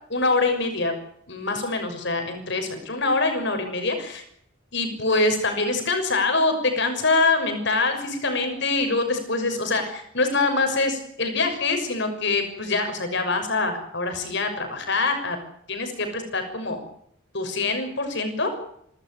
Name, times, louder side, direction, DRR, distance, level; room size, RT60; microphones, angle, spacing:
voice 1, 0.1-0.9 1.3-4.2 4.7-15.4 15.7-16.8 17.3-18.5, left 3 dB, 55° left, 6 dB, 6.4 m, -24 dB
28.5 x 13.5 x 9.4 m, 0.71 s
head